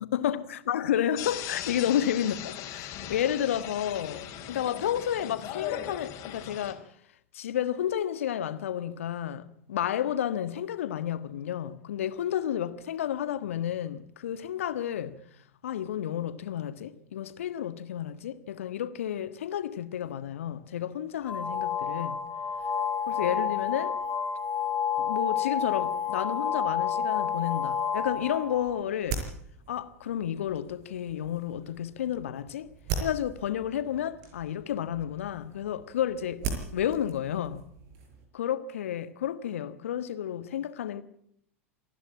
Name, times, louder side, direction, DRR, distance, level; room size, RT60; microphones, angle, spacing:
voice 1, 0.1-6.8 7.3-15.2 15.6-22.2 23.1-24.0 25.0-29.2 29.7-32.7 33.0-36.4 36.7-37.7 38.3-41.0, left 10 dB, 65° left, 1.5 m, -31 dB
sound 1, 1.2-6.7, left 11 dB, 45° left, 4.0 m, -39 dB
sound 2, 21.2-28.8, left 7 dB, 20° left, 2.0 m, -30 dB
sound 3, 28.0-38.3, right 5 dB, 50° right, 6.1 m, -40 dB
27.5 x 11.0 x 8.8 m
figure-of-eight pair, 85°, 8 cm